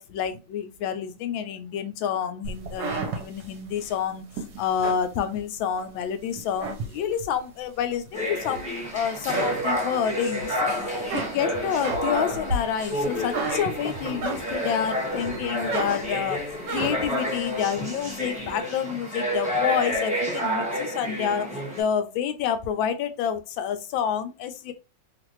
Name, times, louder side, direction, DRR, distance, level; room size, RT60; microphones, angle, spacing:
voice 1, 0.0-4.2 4.6-10.7 11.1-16.4 16.7-24.7, left 8 dB, 85° left, 9 dB, 1.3 m, -28 dB
sound 1, 2.4-5.9 6.3-7.4 7.9-8.9 9.2-10.5 10.8-14.8 15.2-17.2, right 3 dB, 65° right, 1.2 m, -33 dB
sound 2, 8.1-21.8, equal, 5° right, 1.0 m, -29 dB
3.2 x 2.5 x 2.9 m, 0.28 s
omnidirectional pair, 2.1 m